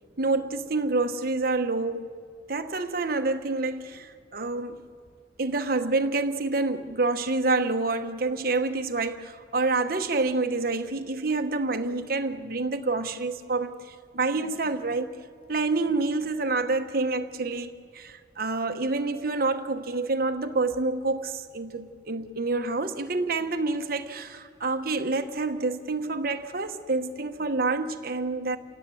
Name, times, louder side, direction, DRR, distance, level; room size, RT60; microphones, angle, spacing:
voice 1, 0.2-2.1 2.5-4.8 5.4-15.1 15.5-28.6, right 3 dB, 55° right, 1.1 m, -28 dB
29.0 x 17.5 x 7.7 m
head